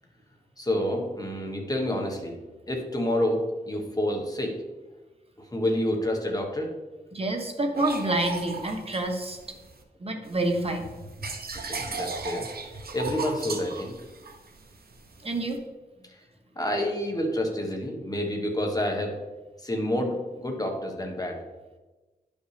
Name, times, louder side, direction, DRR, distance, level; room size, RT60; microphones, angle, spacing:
voice 1, 0.6-4.7 5.4-6.8 11.5-14.1 16.0-16.2 16.5-19.2 19.6-21.5, left 1 dB, 20° left, 2 dB, 1.2 m, -29 dB
voice 2, 7.1-9.6 10.0-10.9 15.2-15.6, right 2 dB, 35° right, 3 dB, 1.1 m, -28 dB
sound 1, 7.7-9.8 10.2-15.6, right 4 dB, 65° right, 0.9 m, -37 dB
11.0 x 5.3 x 3.3 m, 1.2 s
wide cardioid pair, 95°, 17 cm